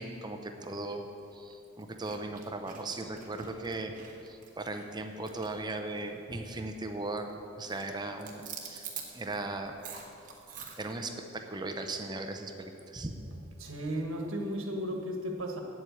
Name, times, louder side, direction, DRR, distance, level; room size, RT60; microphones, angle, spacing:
voice 1, 0.0-3.9 4.2-8.9 9.1-9.8 10.8-13.2, right 2 dB, 20° right, 5 dB, 0.6 m, -38 dB
Human Chewing Chips, 1.2-1.4 1.8-6.2 6.5-6.8 7.1-7.4 7.7-11.0, right 7 dB, 40° right, 1.2 m, -46 dB
voice 2, 13.6-15.6, equal, 70° right, 2 dB, 1.5 m, -34 dB
8.6 x 7.8 x 8.2 m, 2.8 s
head